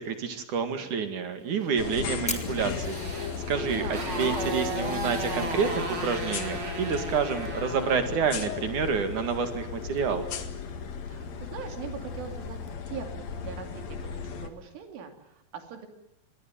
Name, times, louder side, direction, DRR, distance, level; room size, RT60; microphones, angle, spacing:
voice 1, 0.0-10.3, right 6 dB, 50° right, 8 dB, 2.9 m, -29 dB
Fire, 1.2-12.7, equal, 5° left, 0.7 m, -46 dB
sound 1, 1.8-14.5, left 6 dB, 55° left, 2.0 m, -35 dB
Motorcycle, 2.0-8.1, right 3 dB, 30° right, 4.0 m, -36 dB
voice 2, 3.7-4.2 11.1-12.6 12.9-15.9, right 7 dB, 75° right, 6 dB, 5.5 m, -41 dB
26.5 x 21.0 x 9.1 m, 0.84 s
omnidirectional pair, 5.7 m